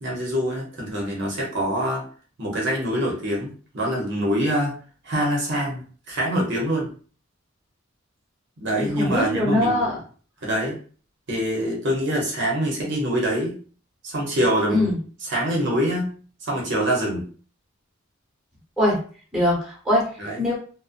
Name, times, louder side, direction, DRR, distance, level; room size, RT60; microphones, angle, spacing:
voice 1, 0.0-2.0 2.4-4.7 5.0-6.9 8.6-9.7 10.4-10.8 11.3-13.6 14.0-14.9 15.2-16.1 16.4-17.2 20.2-20.4, equal, 55° right, -3 dB, 0.8 m, -25 dB
voice 2, 8.8-10.0 14.7-15.0 18.8-19.0 19.3-20.6, left 1 dB, ahead, -4 dB, 1.0 m, -22 dB
2.5 x 2.1 x 2.4 m, 0.41 s
head